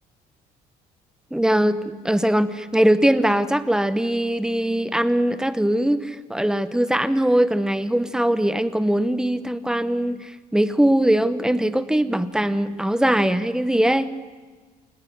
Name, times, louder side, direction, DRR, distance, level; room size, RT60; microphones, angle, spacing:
voice 1, 1.3-14.1, right 1 dB, 5° right, 13 dB, 1.0 m, -21 dB
27.5 x 18.5 x 6.2 m, 1.4 s
cardioid pair, 110°, 17 cm